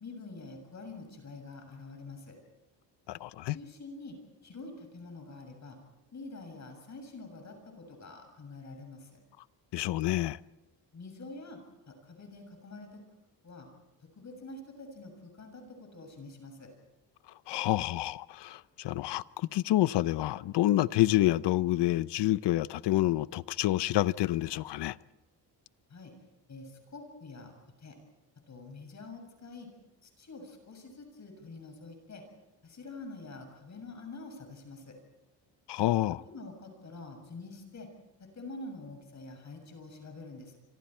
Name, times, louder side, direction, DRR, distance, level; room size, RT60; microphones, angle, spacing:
voice 1, 0.0-2.4 3.5-4.2 4.4-5.8 6.1-9.2 10.9-11.6 11.9-13.0 13.4-13.7 14.2-16.7 25.9-26.1 26.5-28.0 28.5-29.7 30.0-32.2 32.6-35.0 36.1-37.9 38.2-40.6, left 3 dB, 40° left, 7.0 m, -46 dB
voice 2, 3.1-3.5 9.7-10.4 17.5-25.0 35.7-36.2, left 15 dB, 70° left, 0.8 m, -28 dB
27.5 x 25.5 x 4.5 m
cardioid pair, 110°, 43 cm